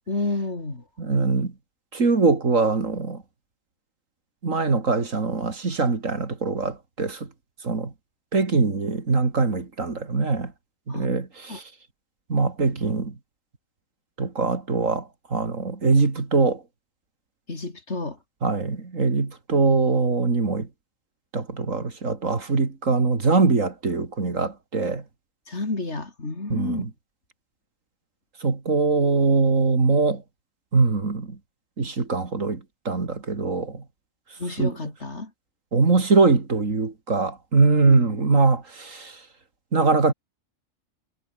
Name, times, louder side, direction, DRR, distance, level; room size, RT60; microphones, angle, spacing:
voice 1, 0.1-0.8 10.9-11.1 11.5-11.6 17.5-18.2 25.5-26.9 34.4-35.3 37.9-38.2, left 3 dB, 55° left, 3.8 m, -30 dB
voice 2, 1.0-1.5 1.9-3.2 4.4-7.3 7.6-7.9 8.3-10.5 10.9-11.6 12.3-13.2 14.2-16.6 18.4-20.7 21.3-25.0 26.5-26.9 28.4-30.2 30.7-31.4 31.8-33.8 34.6-34.8 35.7-39.2 39.7-40.1, right 4 dB, 70° right, 3.2 m, -22 dB
omnidirectional pair, 1.4 m